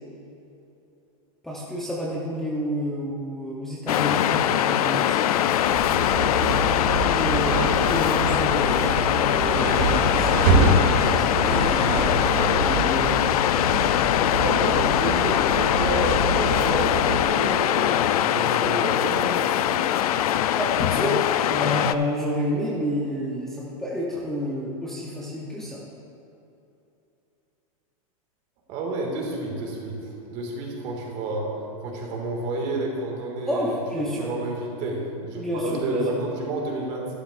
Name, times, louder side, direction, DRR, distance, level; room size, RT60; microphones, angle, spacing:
voice 1, 1.4-5.3 6.8-13.3 20.5-25.8 33.5-34.3 35.3-36.2, equal, ahead, -6 dB, 0.8 m, -30 dB
Waves surf, 3.9-21.9, left 11 dB, 85° left, 0.4 m, -22 dB
sound 1, 5.6-17.3, right 2 dB, 55° right, 2.6 m, -26 dB
voice 2, 12.1-12.7 14.4-19.8 28.7-31.5 31.8-33.8 34.2-37.1, right 2 dB, 35° right, -1 dB, 2.0 m, -30 dB
13.0 x 12.0 x 2.5 m, 2.8 s
supercardioid pair, 165°, 19 cm